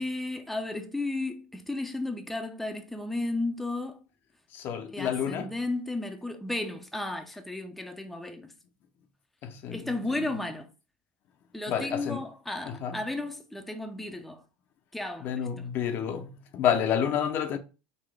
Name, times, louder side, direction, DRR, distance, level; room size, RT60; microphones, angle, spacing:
voice 1, 0.0-4.0 4.9-8.5 9.7-10.7 11.5-14.4 14.9-15.5, left 2 dB, 5° left, 0.5 m, -34 dB
voice 2, 4.5-5.5 9.4-9.8 11.7-12.2 12.7-13.0 15.2-17.6, left 8 dB, 50° left, 0.6 m, -29 dB
3.9 x 2.1 x 3.4 m
hypercardioid pair, 100°, 4 cm